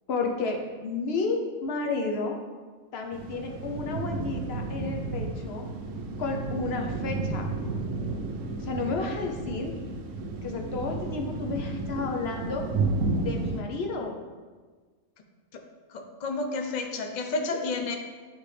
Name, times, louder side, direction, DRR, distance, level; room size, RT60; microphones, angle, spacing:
voice 1, 0.1-2.4 2.9-5.7 6.2-7.5 8.6-9.7 10.4-12.6 13.2-14.2 17.3-17.7, left 3 dB, 55° left, 2 dB, 0.8 m, -32 dB
sound 1, 3.1-13.6, right 3 dB, 65° right, 1.0 m, -32 dB
voice 2, 15.9-18.0, left 3 dB, 85° left, 3 dB, 0.4 m, -31 dB
9.0 x 3.4 x 3.3 m, 1.4 s
omnidirectional pair, 1.5 m